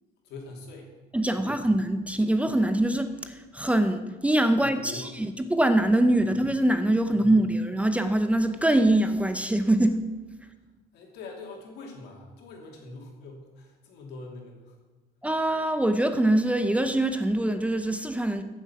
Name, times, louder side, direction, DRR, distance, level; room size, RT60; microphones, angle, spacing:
voice 1, 0.2-0.9 1.3-1.5 4.6-5.1 7.1-7.2 10.9-14.8, left 3 dB, 85° left, 1 dB, 2.8 m, -43 dB
voice 2, 1.1-10.0 15.2-18.4, right 1 dB, 10° right, 9 dB, 0.7 m, -23 dB
14.5 x 7.3 x 5.8 m, 1.2 s
cardioid pair, 110°, 17 cm